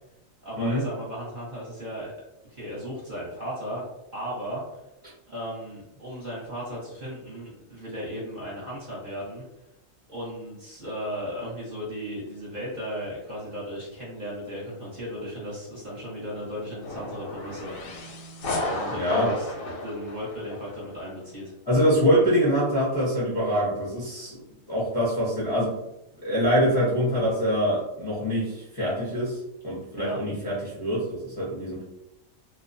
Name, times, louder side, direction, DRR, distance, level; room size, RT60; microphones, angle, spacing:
voice 1, 0.4-2.1 2.5-3.8 4.1-4.8 5.3-9.4 10.1-17.7 18.7-19.4 19.8-21.5 30.0-30.2, equal, 40° right, -6 dB, 0.8 m, -35 dB
sound 1, 16.8-20.9, left 2 dB, 85° left, 1.0 m, -33 dB
voice 2, 18.9-19.3 21.7-24.4 24.7-25.7 26.2-31.9, equal, 25° left, -8 dB, 0.5 m, -24 dB
2.3 x 2.1 x 2.5 m, 0.89 s
omnidirectional pair, 1.4 m